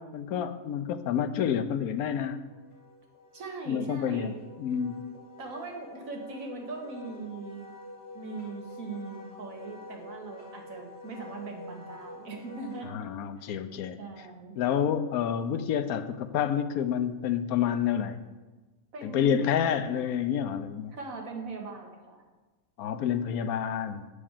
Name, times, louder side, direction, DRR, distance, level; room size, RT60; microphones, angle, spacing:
voice 1, 0.0-2.4 3.7-5.0 12.9-14.0 14.6-18.2 19.0-21.0 22.8-24.0, left 8 dB, 85° left, 11 dB, 1.1 m, -29 dB
Wind instrument woodwind instrument, 1.8-12.8, left 1 dB, 30° left, 3.1 m, -48 dB
voice 2, 3.3-4.3 5.4-7.7 8.1-13.1 13.4-13.6 14.0-14.6 18.9-19.4 20.9-22.2, right 3 dB, 70° right, 1 dB, 1.8 m, -40 dB
8.5 x 5.0 x 7.2 m, 1.2 s
omnidirectional pair, 1.5 m